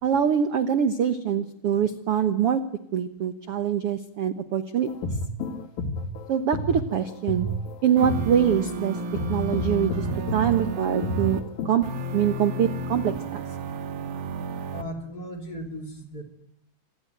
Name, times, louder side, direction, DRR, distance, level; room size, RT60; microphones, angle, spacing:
voice 1, 0.0-2.6 2.9-5.1 6.3-7.5 7.8-9.0 9.3-10.1 10.3-11.8 12.1-13.4, right 8 dB, 60° right, 10 dB, 1.6 m, -24 dB
sound 1, 4.8-11.8, equal, 75° left, 3.7 m, -31 dB
sound 2, 8.0-11.4 11.8-14.8, right 2 dB, 80° right, 4.0 m, -32 dB
voice 2, 14.7-16.2, equal, 25° left, 5 dB, 3.7 m, -37 dB
27.0 x 21.0 x 9.3 m, 0.74 s
omnidirectional pair, 4.2 m